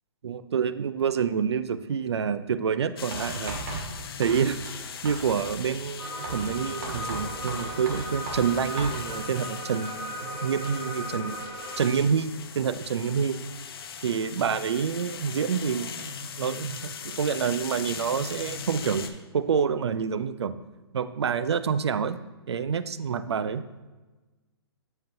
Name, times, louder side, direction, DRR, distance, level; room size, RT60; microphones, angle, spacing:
voice 1, 0.2-3.6 4.2-4.6 5.0-11.4 11.8-13.4 14.0-19.1 19.3-20.5 20.9-22.2 22.5-23.6, right 7 dB, 80° right, 13 dB, 0.5 m, -27 dB
sound 1, 3.0-19.1, left 7 dB, 60° left, 0.7 m, -40 dB
Writing, 3.1-4.8 5.0-5.6 6.2-9.0, right 3 dB, 50° right, 1.7 m, -37 dB
sound 2, 6.0-11.9, equal, 15° right, 1.3 m, -37 dB
7.9 x 7.2 x 2.6 m, 1.2 s
hypercardioid pair, 135°, 14 cm